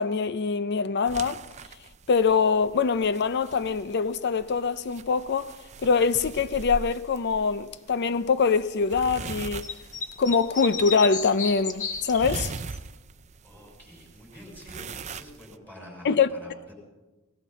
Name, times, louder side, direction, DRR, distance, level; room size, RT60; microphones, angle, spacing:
voice 1, 0.0-1.4 2.1-5.5 5.8-9.6 10.2-12.5 16.0-16.3, left 5 dB, 50° left, 0.5 m, -24 dB
sound 1, 1.1-15.5, right 4 dB, 30° right, 0.5 m, -41 dB
sound 2, 9.6-12.8, left 5 dB, 35° left, 1.3 m, -32 dB
voice 2, 13.4-16.7, equal, 5° left, 5.5 m, -47 dB
18.5 x 18.0 x 4.1 m
head